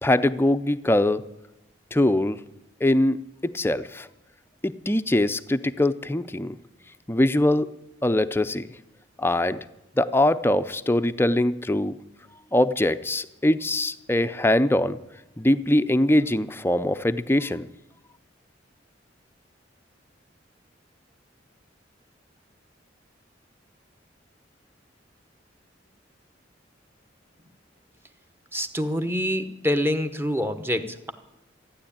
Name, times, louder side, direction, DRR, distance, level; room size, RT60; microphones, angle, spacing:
voice 1, 0.0-1.2 1.9-2.4 2.8-3.2 3.4-4.1 4.6-6.5 7.1-7.7 8.0-8.7 9.2-9.6 10.0-11.9 12.5-15.0 15.4-17.7, left 1 dB, 10° left, 11 dB, 0.5 m, -22 dB
voice 2, 28.5-31.1, equal, 10° right, 8 dB, 1.0 m, -26 dB
14.5 x 9.9 x 8.7 m, 0.95 s
head